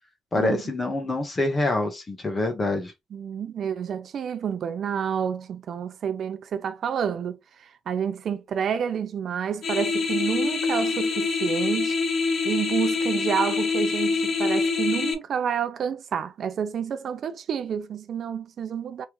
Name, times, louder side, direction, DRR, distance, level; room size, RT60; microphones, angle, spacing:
voice 1, 0.3-2.9, left 2 dB, 30° left, 1.2 m, -25 dB
voice 2, 3.1-12.0 12.4-19.1, right 8 dB, 60° right, 0.4 m, -29 dB
sound 1, 9.6-15.1, left 4 dB, 55° left, 0.8 m, -25 dB
3.3 x 3.2 x 3.0 m
cardioid pair, 90°, 0 cm